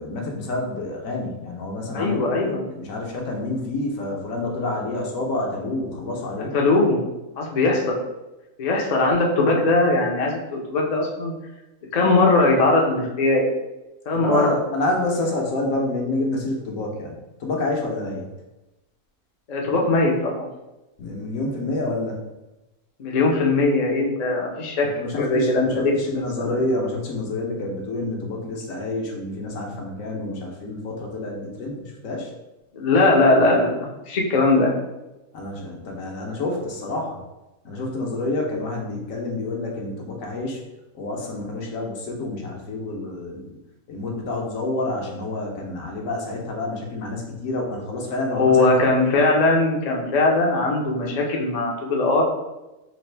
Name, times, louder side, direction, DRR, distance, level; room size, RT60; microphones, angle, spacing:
voice 1, 0.0-6.5 14.1-18.3 21.0-22.2 25.0-32.3 35.3-37.2 37.6-40.6 40.9-43.6 43.9-48.9, left 2 dB, 75° left, 0 dB, 1.1 m, -28 dB
voice 2, 1.9-2.6 6.5-7.0 7.4-7.9 8.6-11.3 11.9-13.5 14.1-14.5 19.5-20.4 23.0-24.9 25.1-25.9 26.4-26.5 32.7-34.7 48.3-52.2, left 2 dB, 50° left, -1 dB, 0.5 m, -20 dB
4.0 x 2.5 x 3.2 m, 1.0 s
omnidirectional pair, 1.5 m